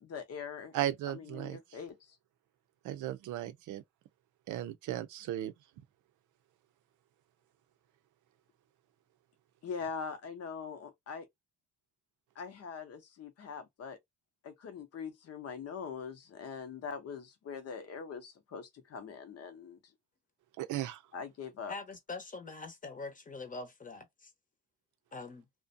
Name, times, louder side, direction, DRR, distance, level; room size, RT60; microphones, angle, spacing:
voice 1, 0.0-0.7 1.1-2.2 9.6-11.3 12.4-14.0 14.4-19.8 21.1-21.7, left 6 dB, 55° left, 0.7 m, -42 dB
voice 2, 0.7-1.6 2.8-3.8 4.5-5.5 20.6-21.0, right 13 dB, 85° right, 0.5 m, -36 dB
voice 3, 21.7-24.3 25.1-25.5, left 3 dB, 25° left, 0.8 m, -43 dB
2.5 x 2.1 x 2.5 m
cardioid pair, 90°, 30 cm